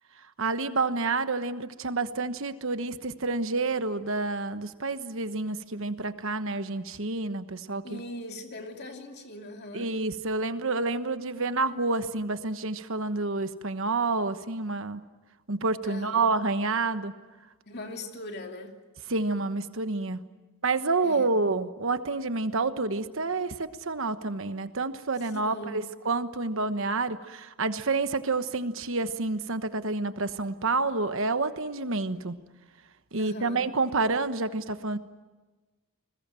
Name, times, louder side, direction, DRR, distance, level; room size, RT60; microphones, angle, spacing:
voice 1, 0.4-8.0 9.7-15.0 15.5-17.1 19.1-20.2 20.6-32.3 33.1-35.0, right 3 dB, 60° right, 10 dB, 1.2 m, -29 dB
voice 2, 7.8-9.9 15.8-16.3 17.7-18.7 21.0-21.3 25.3-25.8 33.1-33.7, left 1 dB, 45° left, 3 dB, 2.9 m, -40 dB
29.5 x 21.0 x 7.7 m, 1.2 s
head